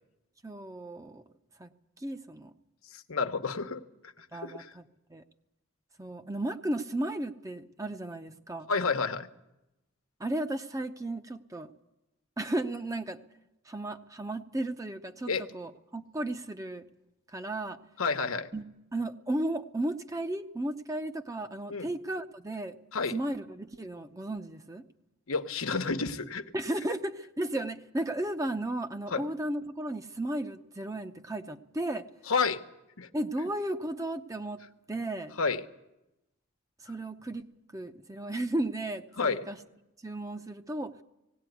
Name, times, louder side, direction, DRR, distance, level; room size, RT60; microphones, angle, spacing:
voice 1, 0.4-1.2 1.6-1.7 2.0-2.5 4.3-4.8 5.1-5.2 6.0-8.7 10.2-11.7 12.4-13.2 13.7-16.9 17.3-17.8 18.5-18.6 18.9-22.8 23.1-24.8 26.5-32.1 33.1-34.6 34.9-35.3 36.8-39.6 40.0-40.9, right 1 dB, 15° right, 8 dB, 0.7 m, -34 dB
voice 2, 2.9-4.7 8.7-9.3 15.3-15.4 18.0-18.5 21.7-21.9 22.9-23.1 25.3-26.4 29.1-29.2 32.3-32.6 33.0-33.1 35.4-35.6 39.2-39.5, left 4 dB, 85° left, 7 dB, 1.1 m, -30 dB
18.5 x 17.5 x 9.3 m, 0.93 s
head